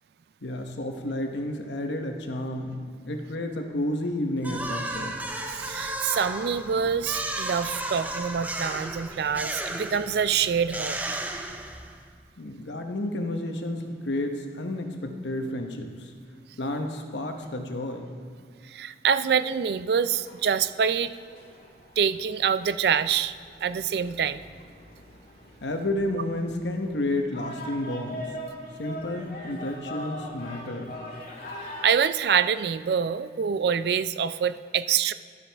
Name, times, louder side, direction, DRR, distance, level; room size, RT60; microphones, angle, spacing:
voice 1, 0.4-5.2 12.4-16.1 16.6-18.1 25.6-28.4 28.8-31.0, left 1 dB, 85° left, 4 dB, 1.0 m, -31 dB
sound 1, 4.4-12.1, right 1 dB, 10° right, 0.5 m, -34 dB
voice 2, 5.5-11.2 18.6-21.1 22.0-24.4 31.8-35.1, right 7 dB, 65° right, 14 dB, 0.3 m, -26 dB
sound 2, 19.9-31.8, equal, 50° left, 2.2 m, -42 dB
12.0 x 7.5 x 3.4 m, 2.1 s
head